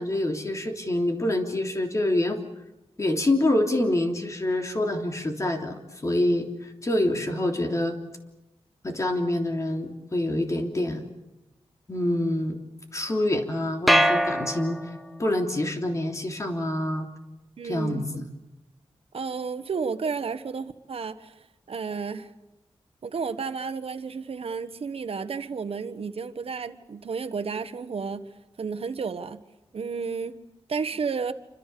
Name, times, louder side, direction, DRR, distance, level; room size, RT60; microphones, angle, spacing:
voice 1, 0.0-2.4 3.0-8.0 8.8-11.1 11.9-12.6 12.9-14.8 15.2-17.1 17.7-18.3, left 1 dB, 30° left, 3.2 m, -26 dB
sound 1, 13.9-15.2, equal, ahead, 1.4 m, -23 dB
voice 2, 17.6-18.2 19.1-21.3 21.7-22.3 23.0-28.3 28.6-29.4 29.7-30.4 30.7-31.3, right 5 dB, 70° right, 1.4 m, -32 dB
28.5 x 25.5 x 7.0 m
wide cardioid pair, 130°, 10 cm